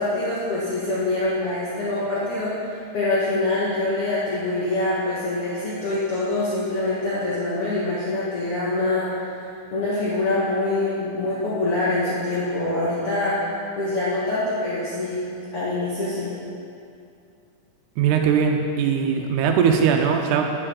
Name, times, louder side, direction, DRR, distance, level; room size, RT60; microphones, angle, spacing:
voice 1, 0.0-9.5 9.7-13.5 13.8-15.2 15.5-16.3, left 2 dB, 55° left, -9 dB, 2.1 m, -25 dB
voice 2, 18.0-20.6, right 6 dB, 90° right, 3 dB, 2.2 m, -20 dB
11.0 x 9.6 x 3.7 m, 2.5 s
omnidirectional pair, 3.5 m